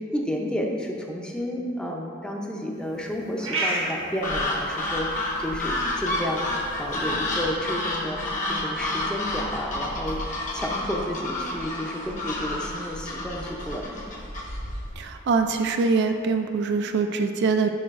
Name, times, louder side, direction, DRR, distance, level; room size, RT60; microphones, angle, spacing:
voice 1, 0.0-14.0, equal, 5° left, 0 dB, 0.6 m, -31 dB
sound 1, 2.7-16.8, right 2 dB, 85° right, 1.4 m, -39 dB
sound 2, 4.2-14.9, left 1 dB, 40° left, 1.0 m, -30 dB
voice 2, 15.0-17.7, right 4 dB, 55° right, 6 dB, 0.3 m, -23 dB
9.8 x 4.8 x 2.5 m, 2.5 s
head